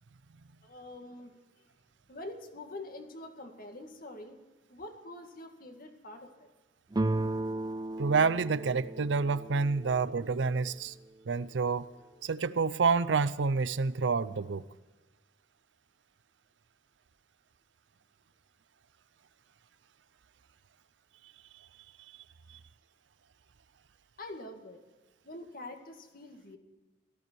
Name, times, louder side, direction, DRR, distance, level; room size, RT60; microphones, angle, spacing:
voice 1, 0.6-1.4 2.1-4.4 4.7-6.5 9.8-9.9 24.2-24.8 25.2-26.6, left 2 dB, 55° left, 2.1 m, -45 dB
sound 1, 6.9-10.5, right 2 dB, 20° right, 0.5 m, -35 dB
voice 2, 8.0-10.9 11.3-11.9 12.2-14.6, right 4 dB, 90° right, 0.6 m, -28 dB
18.0 x 14.0 x 4.6 m
head